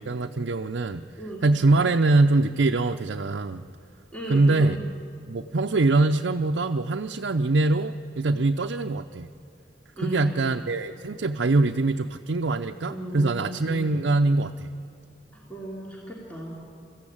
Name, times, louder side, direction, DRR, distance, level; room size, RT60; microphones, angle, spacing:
voice 1, 0.0-1.0 1.4-3.6 4.3-4.8 5.3-9.3 10.0-14.8, right 2 dB, 85° right, 5 dB, 0.6 m, -23 dB
voice 2, 4.1-4.8 10.0-10.6 12.9-14.0 15.3-16.5, right 1 dB, 10° left, -4 dB, 2.9 m, -36 dB
26.0 x 14.5 x 8.7 m, 2.5 s
head